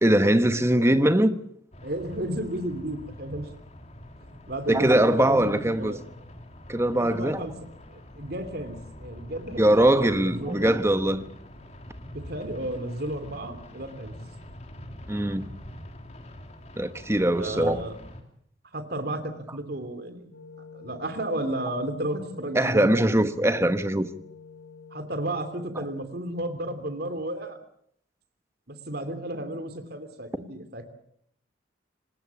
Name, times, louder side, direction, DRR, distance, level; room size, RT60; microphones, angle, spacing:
voice 1, 0.0-1.4 4.7-5.9 6.7-7.4 9.6-11.2 15.1-15.5 16.8-17.8 22.5-24.1, right 1 dB, 15° right, 1.1 m, -21 dB
sound 1, 1.7-18.2, left 1 dB, 35° left, 3.1 m, -45 dB
voice 2, 1.8-3.5 4.2-6.0 6.7-7.5 7.9-10.8 12.1-14.1 17.3-18.0 18.7-20.3 20.7-22.9 24.9-27.6 28.7-30.9, right 1 dB, 55° right, 3.1 m, -33 dB
sound 2, 20.3-26.0, left 5 dB, 85° left, 4.8 m, -47 dB
25.5 x 20.0 x 7.1 m
head